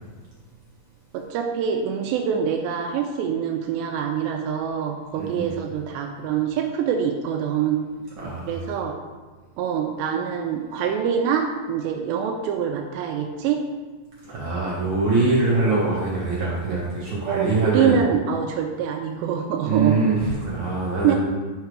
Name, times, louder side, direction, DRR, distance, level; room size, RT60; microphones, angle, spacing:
voice 1, 1.1-7.9 8.4-9.0 9.6-13.6 17.3-20.0 21.0-21.2, right 8 dB, 80° right, 3 dB, 2.7 m, -25 dB
voice 2, 5.1-5.5 8.2-8.6 14.2-18.0 19.6-21.2, right 3 dB, 65° right, -6 dB, 2.0 m, -23 dB
10.5 x 5.7 x 4.7 m, 1.4 s
omnidirectional pair, 5.3 m